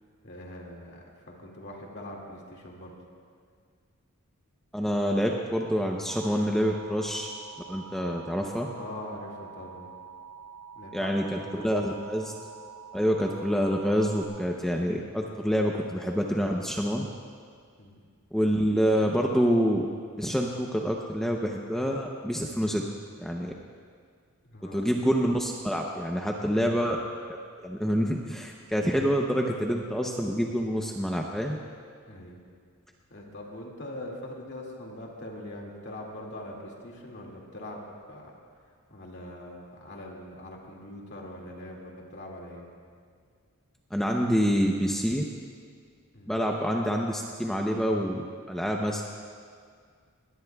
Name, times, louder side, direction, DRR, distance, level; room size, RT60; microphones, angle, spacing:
voice 1, 0.2-2.9 8.7-9.9 10.8-11.9 17.8-18.0 24.4-24.9 26.4-26.7 32.1-32.4 33.1-38.3 38.9-42.6 46.1-46.4, left 1 dB, 50° left, -1 dB, 2.2 m, -42 dB
voice 2, 4.7-7.3 7.7-8.7 10.9-12.3 12.9-17.0 18.3-19.9 20.2-22.8 23.2-23.5 24.7-27.0 27.3-27.4 27.6-31.6 43.9-45.2 46.3-49.0, equal, ahead, 0 dB, 0.7 m, -27 dB
Alarm, 6.1-14.3, right 6 dB, 85° right, 4.3 m, -46 dB
21.5 x 18.0 x 2.3 m, 2.1 s
head